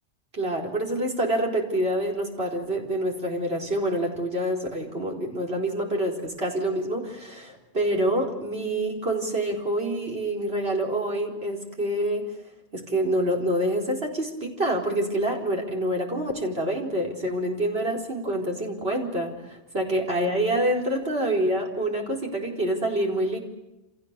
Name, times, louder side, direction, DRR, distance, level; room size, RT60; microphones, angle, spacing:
voice 1, 0.3-12.2 12.7-23.4, right 1 dB, 60° right, 0 dB, 4.7 m, -27 dB
29.5 x 27.0 x 6.8 m, 1.0 s
omnidirectional pair, 1.1 m